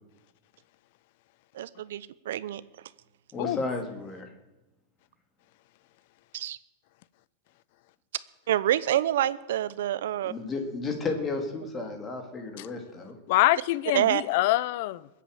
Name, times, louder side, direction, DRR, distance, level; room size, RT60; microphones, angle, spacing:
voice 1, 1.5-2.6 6.3-6.6 8.5-10.3 13.9-14.2, right 12 dB, 75° right, 0.8 m, -27 dB
voice 2, 3.3-4.3 10.1-13.2, left 3 dB, 15° left, 2.1 m, -33 dB
voice 3, 13.3-15.1, left 17 dB, 50° left, 0.5 m, -25 dB
21.5 x 8.5 x 7.7 m
supercardioid pair, 170°, 0 cm